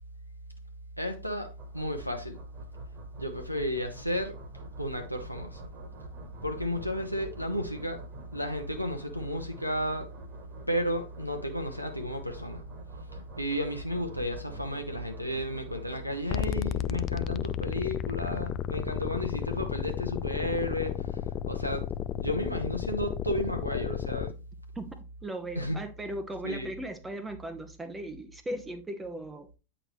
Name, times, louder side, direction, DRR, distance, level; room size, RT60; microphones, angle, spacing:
voice 1, 1.0-2.4 3.2-4.4 4.8-5.6 6.4-8.0 8.3-10.1 10.7-12.6 13.4-21.9 22.2-24.4 25.6-25.8 26.4-26.7, equal, 90° left, 0.7 m, -33 dB
sound 1, 1.6-16.4, right 1 dB, 35° right, 1.5 m, -47 dB
sound 2, 16.3-24.3, left 11 dB, 35° left, 0.3 m, -33 dB
voice 2, 24.8-29.5, right 1 dB, 10° right, 0.7 m, -38 dB
8.5 x 5.0 x 3.0 m
figure-of-eight pair, 90°, 0 cm